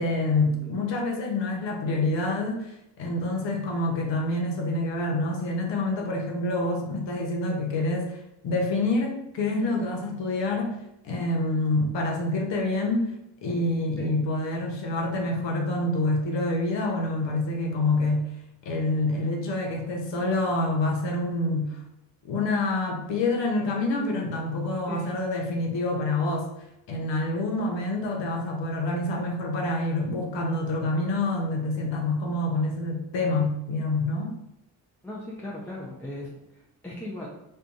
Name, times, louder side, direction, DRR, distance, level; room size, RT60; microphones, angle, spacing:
voice 1, 0.0-2.7 3.0-8.2 8.4-10.8 11.0-13.1 13.4-18.3 18.6-21.8 22.2-26.5 26.9-34.3, left 2 dB, 65° left, 1 dB, 0.8 m, -27 dB
voice 2, 35.0-37.3, left 1 dB, 5° left, -6 dB, 0.6 m, -38 dB
2.5 x 2.3 x 2.5 m, 0.84 s
supercardioid pair, 45°, 48 cm